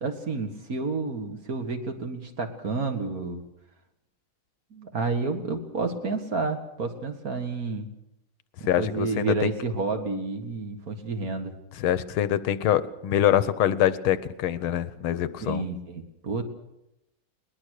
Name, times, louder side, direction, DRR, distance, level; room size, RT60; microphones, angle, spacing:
voice 1, 0.0-3.5 4.7-7.9 8.6-11.5 15.4-16.4, right 3 dB, 45° right, 6 dB, 2.3 m, -30 dB
voice 2, 8.6-9.5 11.8-15.6, left 11 dB, 80° left, 15 dB, 1.7 m, -24 dB
21.5 x 20.5 x 6.6 m, 0.90 s
omnidirectional pair, 2.3 m